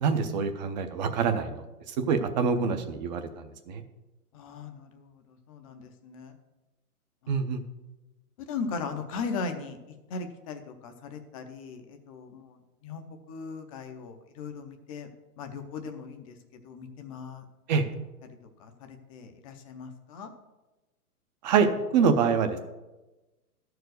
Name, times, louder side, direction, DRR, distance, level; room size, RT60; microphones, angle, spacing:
voice 1, 0.0-3.8 7.3-7.6 17.7-17.9 21.4-22.6, right 5 dB, 30° right, 8 dB, 0.6 m, -26 dB
voice 2, 4.3-6.4 7.2-7.4 8.4-15.1 15.4-17.4 18.2-20.3, left 4 dB, 25° left, 7 dB, 0.6 m, -39 dB
12.5 x 4.7 x 6.3 m, 1.1 s
hypercardioid pair, 150°, 46 cm